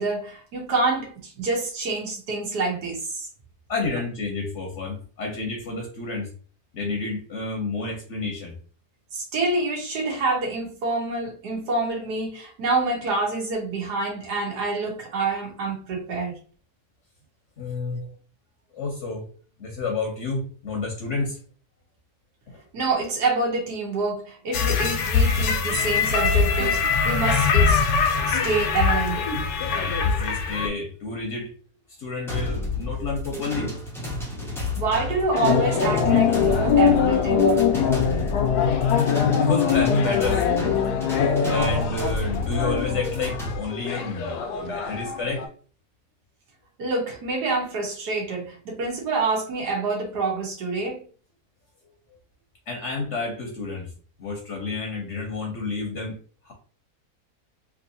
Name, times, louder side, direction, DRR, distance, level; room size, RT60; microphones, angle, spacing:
voice 1, 0.0-3.3 9.1-16.4 17.9-18.1 22.7-27.8 28.3-29.3 34.8-37.4 46.8-51.0, right 3 dB, 75° right, 1.6 m, -27 dB
voice 2, 3.7-6.3 6.7-8.6 17.6-18.1 18.7-19.3 19.6-21.4 22.5-22.6 29.7-31.6 31.9-33.8 38.6-38.9 39.3-40.5 41.5-45.4 52.7-53.9 54.2-56.5, left 3 dB, 55° left, 1.0 m, -30 dB
sound 1, 24.5-30.7, left 5 dB, 90° left, 1.3 m, -22 dB
sound 2, 32.3-43.6, left 2 dB, 5° left, 0.3 m, -30 dB
sound 3, 35.3-45.5, left 7 dB, 75° left, 1.1 m, -23 dB
3.5 x 2.9 x 2.7 m
omnidirectional pair, 1.8 m